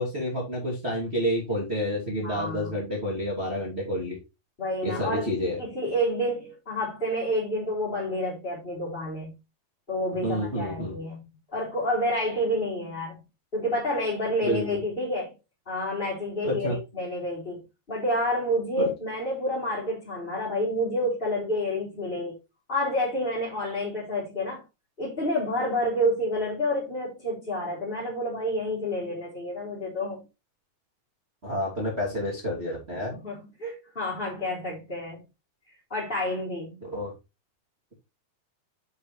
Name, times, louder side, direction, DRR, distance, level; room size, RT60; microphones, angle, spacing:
voice 1, 0.0-4.2 4.8-5.6 10.2-11.0 14.4-14.6 16.4-16.8 18.8-18.9 31.4-33.1 36.8-37.1, equal, 20° right, 2.3 m, -29 dB
voice 2, 2.2-2.7 4.6-5.3 5.6-9.3 9.9-13.2 13.5-15.3 15.6-17.6 17.9-22.3 22.7-24.6 25.0-30.2 33.1-35.2 35.9-36.9, equal, 15° left, 3.3 m, -29 dB
8.0 x 7.7 x 3.2 m
omnidirectional pair, 4.4 m